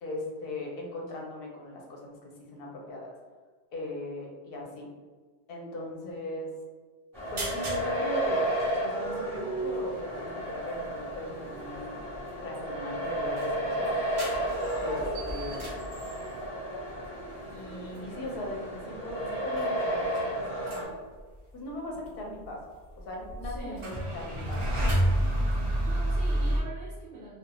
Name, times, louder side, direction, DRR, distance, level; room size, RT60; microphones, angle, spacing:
voice 1, 0.0-3.1 3.7-4.9 5.5-6.5 7.3-8.5 8.8-11.9 12.4-14.0 14.8-15.7 17.5-20.9 21.5-22.6 23.0-25.0, left 1 dB, 65° left, -1 dB, 0.8 m, -38 dB
sound 1, 7.1-20.8, right 1 dB, 5° left, 0.6 m, -33 dB
sound 2, 7.2-7.9 8.2-8.3 8.6-8.8 10.2-10.3 10.8-11.1 11.7-12.2 12.5-12.6 12.9-16.5 16.9-17.2 18.0-18.1 18.3-18.6 19.1-19.3 19.5-19.8 20.0-20.9 21.2-21.4 22.4-22.5 22.9-26.6, right 1 dB, 45° right, 0.4 m, -30 dB
voice 2, 23.4-23.9 25.8-27.4, right 2 dB, 80° right, -5 dB, 0.9 m, -43 dB
2.3 x 2.3 x 2.8 m, 1.4 s
omnidirectional pair, 1.1 m